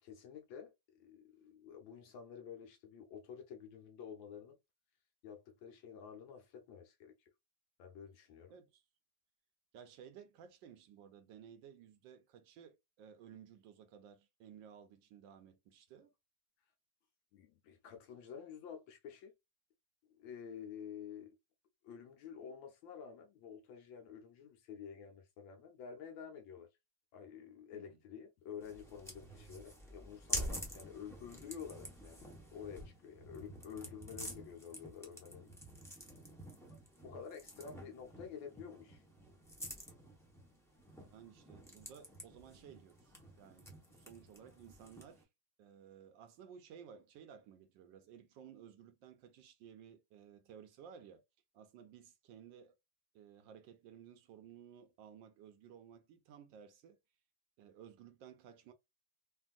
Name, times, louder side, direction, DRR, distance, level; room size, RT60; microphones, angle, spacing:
voice 1, 0.0-4.6 5.2-7.3 7.8-8.5 17.3-19.3 20.1-21.4 21.8-26.7 27.1-35.6 36.7-39.0, left 7 dB, 75° left, 1.4 m, -50 dB
voice 2, 8.5-8.8 9.7-16.1 27.7-28.0 41.1-45.3 45.6-51.2 51.5-52.8 53.1-57.0 57.6-58.7, right 8 dB, 75° right, 1.2 m, -56 dB
sound 1, 28.6-45.2, equal, 5° left, 0.4 m, -48 dB
3.3 x 2.4 x 2.3 m
omnidirectional pair, 2.2 m